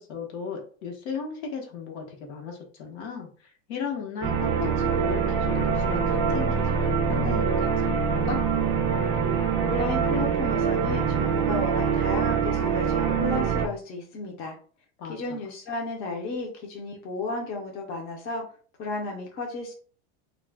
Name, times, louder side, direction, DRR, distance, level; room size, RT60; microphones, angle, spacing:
voice 1, 0.0-8.4 15.0-15.4, left 5 dB, 80° left, 1 dB, 1.0 m, -36 dB
sound 1, 4.2-13.7, right 6 dB, 30° right, 0.4 m, -24 dB
voice 2, 9.6-14.6 15.1-18.4 18.8-19.7, left 2 dB, 30° left, 0 dB, 0.4 m, -33 dB
2.3 x 2.1 x 3.3 m, 0.41 s
supercardioid pair, 160°, 32 cm